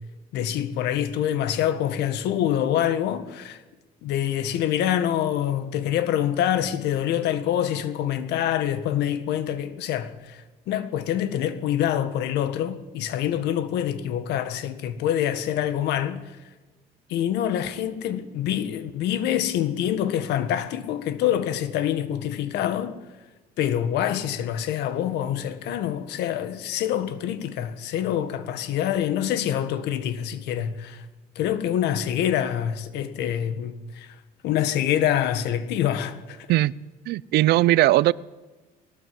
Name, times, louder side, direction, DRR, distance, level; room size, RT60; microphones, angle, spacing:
voice 1, 0.3-3.6 4.0-16.2 17.1-23.0 23.6-31.0 31.3-34.1 34.4-36.4, left 10 dB, 85° left, 1.7 m, -26 dB
voice 2, 37.1-38.1, right 16 dB, 75° right, 0.6 m, -19 dB
20.0 x 18.0 x 7.9 m
cardioid pair, 110°, 17 cm